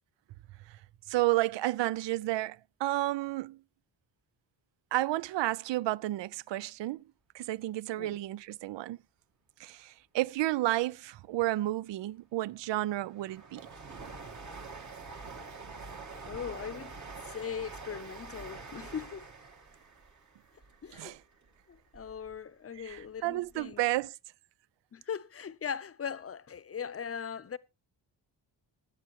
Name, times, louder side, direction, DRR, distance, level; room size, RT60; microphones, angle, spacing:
voice 1, 1.1-3.6 4.9-7.0 7.3-9.0 9.6-13.7 20.9-21.2 22.8-24.1, right 16 dB, 75° right, 0.5 m, -31 dB
Train, 12.2-22.3 22.8-23.7 23.9-24.0, right 4 dB, 40° right, 1.6 m, -46 dB
voice 2, 16.3-17.0 17.3-19.3 20.8-21.2 21.7-23.8 24.9-27.6, left 7 dB, 35° left, 0.7 m, -39 dB
20.0 x 8.4 x 3.0 m
wide cardioid pair, 110°, 43 cm